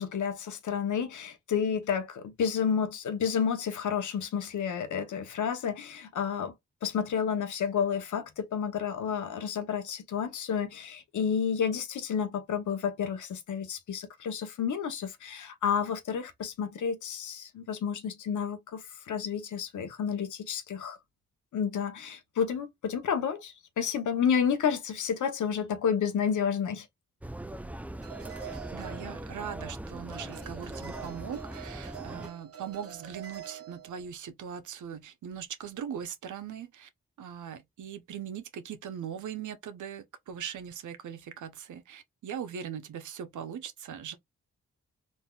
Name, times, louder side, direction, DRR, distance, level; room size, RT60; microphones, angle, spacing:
voice 1, 0.0-6.5 6.8-21.0 21.5-26.9, left 7 dB, 75° left, 0.9 m, -30 dB
sound 1, 27.2-32.3, right 1 dB, 5° right, 0.3 m, -40 dB
sound 2, 28.0-29.7 30.1-34.1, right 9 dB, 50° right, 1.0 m, -46 dB
voice 2, 28.4-36.9 37.2-44.2, right 8 dB, 75° right, 0.7 m, -40 dB
3.9 x 2.6 x 2.3 m
supercardioid pair, 40°, 30 cm